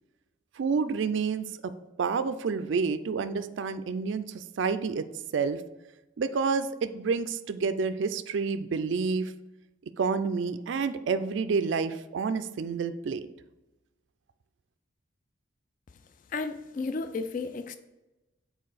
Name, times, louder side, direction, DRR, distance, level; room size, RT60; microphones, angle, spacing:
voice 1, 0.6-1.7 2.0-5.1 5.3-5.6 6.2-9.3 10.0-13.3, right 5 dB, 65° right, 11 dB, 0.3 m, -29 dB
voice 2, 16.3-17.8, left 3 dB, 40° left, 9 dB, 0.3 m, -33 dB
6.6 x 4.6 x 4.0 m, 1.0 s
head